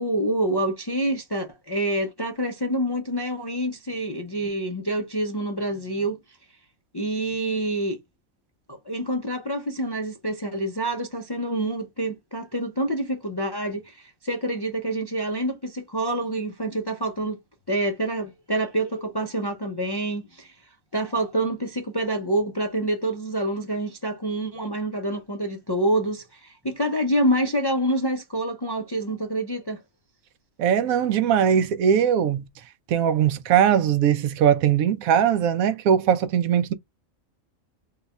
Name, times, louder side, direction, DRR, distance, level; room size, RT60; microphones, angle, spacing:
voice 1, 0.0-6.2 6.9-8.0 8.7-17.4 17.7-20.6 20.9-29.8, right 1 dB, 35° left, 0.3 m, -27 dB
voice 2, 30.6-32.4 32.9-36.7, right 8 dB, 85° right, 1.0 m, -20 dB
3.9 x 2.3 x 4.0 m
omnidirectional pair, 1.4 m